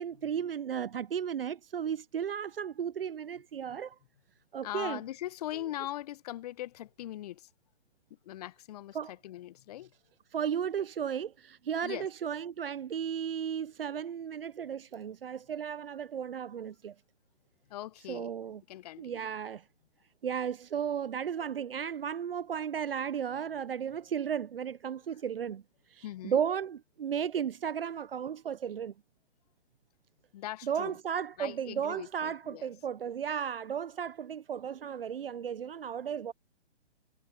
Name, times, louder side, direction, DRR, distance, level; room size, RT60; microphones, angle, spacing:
voice 1, 0.0-3.9 4.5-5.0 8.9-9.1 10.3-16.9 18.1-18.6 19.0-19.7 20.2-25.6 25.9-28.9 30.6-36.3, right 8 dB, 60° right, 0.8 m, -34 dB
voice 2, 4.6-7.5 8.1-9.9 11.8-12.1 17.7-18.3 18.7-19.3 26.0-26.4 30.3-31.0 31.4-32.7, left 14 dB, 35° left, 1.4 m, -41 dB
figure-of-eight pair, 130°, 33 cm